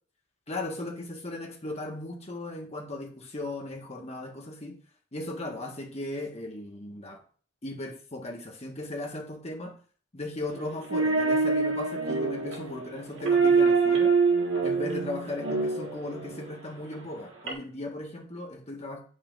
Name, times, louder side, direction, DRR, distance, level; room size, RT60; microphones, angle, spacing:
voice 1, 0.5-4.8 5.1-7.2 7.6-9.7 10.1-14.1 14.6-19.0, left 2 dB, 35° left, 1 dB, 1.4 m, -37 dB
sound 1, 10.5-16.4 17.5-17.6, right 4 dB, 75° right, 1.6 m, -25 dB
8.5 x 5.6 x 2.5 m, 0.43 s
head